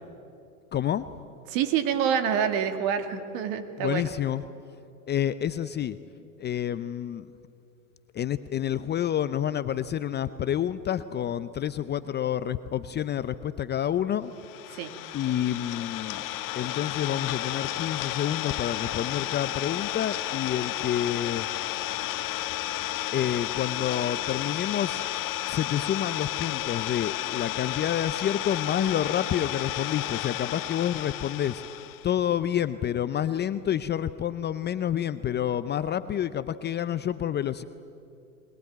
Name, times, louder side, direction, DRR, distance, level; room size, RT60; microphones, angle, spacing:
voice 1, 0.7-1.1 3.8-4.4 5.1-6.0 6.4-7.3 8.1-14.3 15.1-16.2 16.6-21.5 23.1-25.0 25.5-31.6 32.0-37.6, left 10 dB, 25° left, 13 dB, 0.6 m, -28 dB
voice 2, 1.5-4.1 14.7-14.9, right 8 dB, 50° right, 8 dB, 2.4 m, -27 dB
Idling, 14.4-32.1, left 15 dB, 45° left, 1.5 m, -32 dB
22.0 x 21.0 x 9.4 m, 2.5 s
hypercardioid pair, 100°, 44 cm